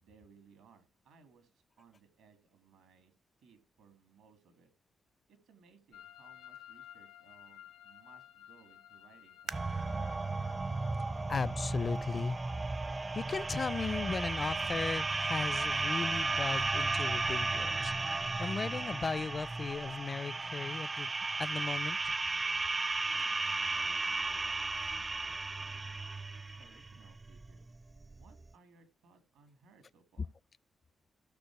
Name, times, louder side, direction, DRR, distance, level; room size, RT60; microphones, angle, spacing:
voice 1, 0.0-4.7 5.3-10.1 23.1-23.4 23.8-24.5 24.7-26.0 26.4-27.6 28.2-30.3, right 5 dB, 85° right, 2.3 m, -63 dB
sound 1, 5.9-15.0, left 11 dB, 90° left, 2.1 m, -57 dB
sound 2, 9.5-28.4, right 3 dB, 35° right, 0.5 m, -34 dB
sound 3, 9.5-12.8 13.4-13.5 14.2-14.5 14.9-15.0, right 6 dB, 70° right, 1.0 m, -51 dB
voice 2, 11.3-12.4 13.1-21.1 21.4-22.1, left 4 dB, 45° left, 0.5 m, -37 dB
15.5 x 6.2 x 4.7 m
supercardioid pair, 45°, 0 cm